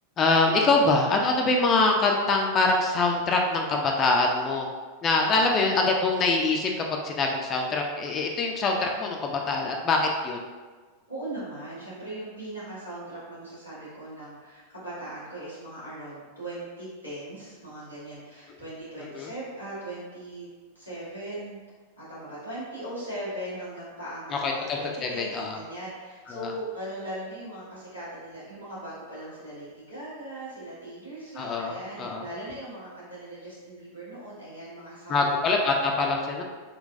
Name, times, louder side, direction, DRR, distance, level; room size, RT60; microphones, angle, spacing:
voice 1, 0.2-4.7 5.0-10.4 19.2-19.3 24.3-25.6 26.3-26.5 31.4-32.2 35.1-36.4, left 3 dB, 25° left, 1 dB, 0.4 m, -24 dB
voice 2, 5.2-5.6 11.1-20.5 20.7-21.6 22.0-35.2, right 1 dB, 80° right, -11 dB, 1.2 m, -39 dB
3.9 x 2.2 x 2.5 m, 1.4 s
figure-of-eight pair, 90°, 0 cm